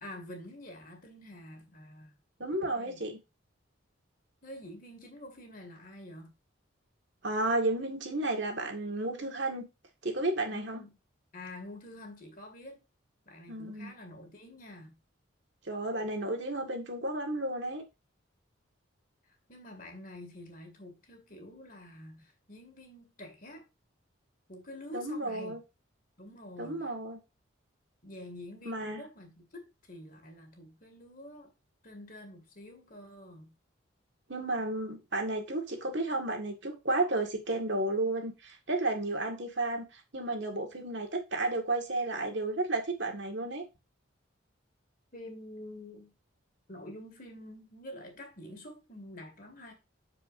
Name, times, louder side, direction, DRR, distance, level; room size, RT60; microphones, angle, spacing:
voice 1, 0.0-2.1 2.6-3.0 4.4-6.3 10.5-10.9 11.3-12.8 13.3-15.0 19.3-23.7 24.5-25.6 26.2-26.9 28.0-31.5 31.8-33.5 45.1-46.1 46.7-49.7, left 1 dB, 40° left, 2.3 m, -47 dB
voice 2, 2.4-3.2 7.2-9.7 10.0-10.8 13.5-13.9 15.7-17.8 24.9-25.6 26.6-27.2 28.7-29.0 34.3-43.6, right 2 dB, 60° right, 1.9 m, -32 dB
12.5 x 5.0 x 2.7 m
head